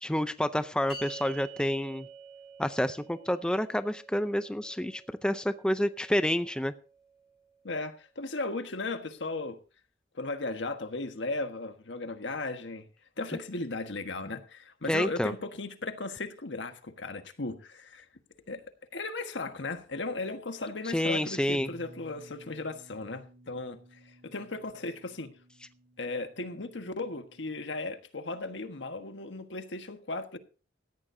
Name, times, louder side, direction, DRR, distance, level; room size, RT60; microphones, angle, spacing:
voice 1, 0.0-2.1 2.6-6.7 14.9-15.3 20.8-21.7, left 1 dB, 5° left, 0.5 m, -29 dB
sound 1, 0.9-7.4, right 4 dB, 30° left, 3.8 m, -48 dB
voice 2, 7.6-9.6 10.1-12.9 13.2-18.1 18.5-18.6 18.9-25.3 26.0-30.4, left 3 dB, 80° left, 1.4 m, -36 dB
Bass guitar, 21.5-27.8, right 1 dB, 30° right, 2.8 m, -56 dB
17.5 x 14.0 x 2.7 m
head